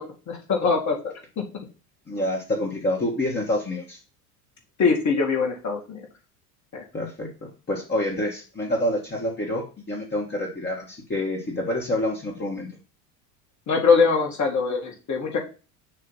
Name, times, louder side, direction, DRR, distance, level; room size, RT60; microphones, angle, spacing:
voice 1, 0.0-1.4 4.8-6.0 6.7-6.8 13.7-15.4, left 5 dB, 40° left, 2 dB, 2.0 m, -23 dB
voice 2, 2.1-4.0 6.9-12.7, left 1 dB, 20° left, -3 dB, 1.6 m, -27 dB
6.7 x 2.8 x 5.6 m, 0.34 s
hypercardioid pair, 75°, 47 cm